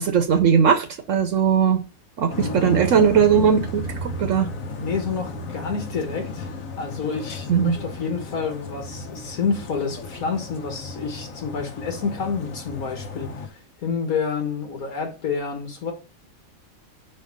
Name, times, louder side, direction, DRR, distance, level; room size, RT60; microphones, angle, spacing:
voice 1, 0.0-1.8 2.2-4.5 7.5-7.8, right 7 dB, 70° right, 1.0 m, -19 dB
sound 1, 2.3-13.5, left 1 dB, 75° left, 1.3 m, -34 dB
voice 2, 2.4-3.0 4.8-15.9, left 5 dB, 90° left, 1.8 m, -29 dB
5.2 x 4.4 x 5.1 m
omnidirectional pair, 1.5 m